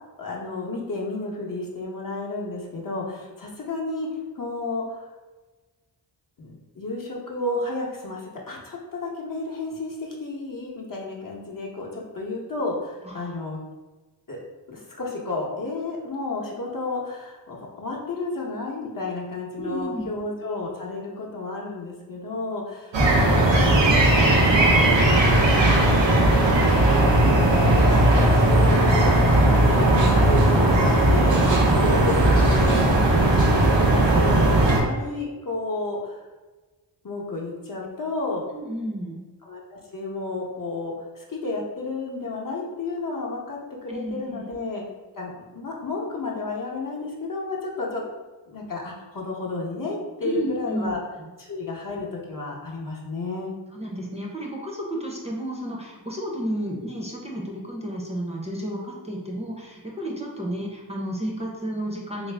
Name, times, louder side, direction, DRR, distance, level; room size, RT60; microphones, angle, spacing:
voice 1, 0.2-4.1 4.3-5.1 6.4-13.6 14.3-14.4 14.7-24.1 25.3-26.6 27.3-32.7 33.0-36.2 37.0-38.4 39.4-44.8 45.2-48.0 48.5-51.0 51.4-53.5, left 3 dB, 50° left, -2 dB, 0.8 m, -32 dB
voice 2, 19.6-20.1 38.5-39.2 43.9-44.4 50.2-51.0 53.7-62.3, right 1 dB, 15° right, -3 dB, 0.6 m, -32 dB
sound 1, 22.9-34.8, right 1 dB, 90° right, 0.7 m, -18 dB
3.3 x 2.6 x 3.3 m, 1.2 s
wide cardioid pair, 70°, 43 cm